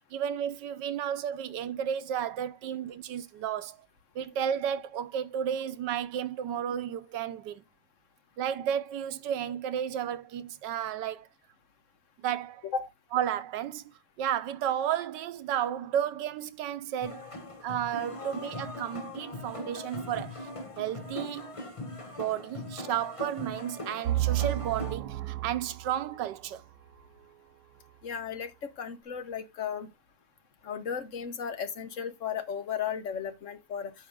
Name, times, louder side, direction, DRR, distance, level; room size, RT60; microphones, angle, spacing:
voice 1, 0.1-3.8 4.1-7.6 8.4-11.3 12.2-12.6 13.1-17.3 17.6-20.5 20.8-21.6 22.0-26.6, right 9 dB, 90° right, 1.4 m, -33 dB
sound 1, 17.0-24.9, left 2 dB, 20° left, 1.2 m, -40 dB
sound 2, 24.1-26.0, right 17 dB, 70° right, 1.1 m, -31 dB
voice 2, 28.0-28.5 28.8-29.9 30.6-33.9, left 7 dB, 50° left, 1.2 m, -35 dB
8.8 x 5.7 x 3.5 m
omnidirectional pair, 1.8 m